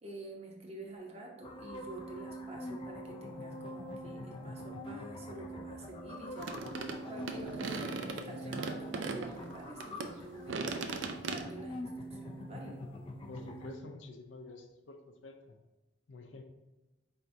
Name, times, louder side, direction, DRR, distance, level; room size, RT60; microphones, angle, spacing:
voice 1, 0.0-6.5 7.1-10.6 11.2-12.8, right 2 dB, 35° right, 0 dB, 0.7 m, -47 dB
sound 1, 1.4-13.8, equal, 30° left, 0.3 m, -44 dB
sound 2, 6.4-10.1 10.5-11.4, right 4 dB, 80° right, 0.4 m, -38 dB
voice 2, 13.2-15.6 16.1-16.4, left 3 dB, 80° left, 5 dB, 0.5 m, -49 dB
4.5 x 3.4 x 2.6 m, 1.1 s
head